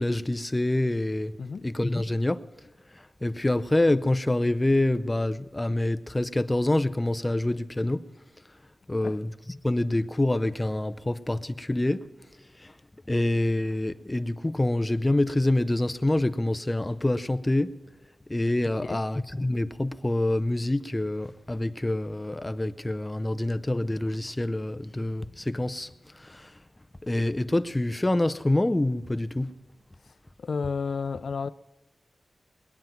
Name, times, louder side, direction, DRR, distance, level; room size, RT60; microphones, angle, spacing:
voice 1, 0.0-1.3 1.6-2.4 2.9-8.0 8.9-12.0 12.6-12.7 13.1-17.7 18.3-26.5 27.0-29.5, left 1 dB, 15° left, 0.5 m, -26 dB
voice 2, 30.4-31.5, left 5 dB, 65° left, 0.4 m, -31 dB
21.5 x 9.2 x 5.9 m
wide cardioid pair, 130°, 0 cm